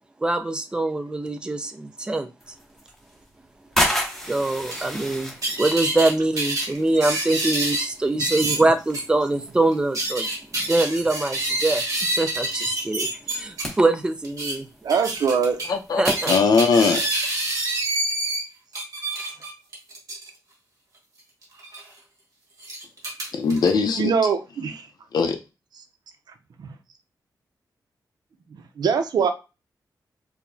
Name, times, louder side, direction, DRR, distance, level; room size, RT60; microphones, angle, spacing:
voice 1, 0.2-2.3 4.3-10.3 10.5-11.8 12.2-14.7 16.0-16.4, right 2 dB, 10° right, 0.4 m, -23 dB
sound 1, 2.4-18.2, equal, 5° left, 0.8 m, -35 dB
sound 2, 4.7-4.8 5.4-6.1 6.4-7.9 8.2-8.6 8.9-9.0 9.7-13.6 14.2-14.5 14.9-15.7 16.1-18.4 18.7-20.3 21.6-21.8 22.6-23.7, right 2 dB, 50° right, 1.3 m, -27 dB
voice 2, 14.8-15.6 24.0-24.9 26.6-26.7 28.8-29.3, right 6 dB, 75° right, 0.5 m, -22 dB
voice 3, 15.7-17.1 23.3-24.1 25.1-25.4, left 5 dB, 70° left, 0.5 m, -20 dB
4.6 x 2.1 x 2.6 m
wide cardioid pair, 165°, 7 cm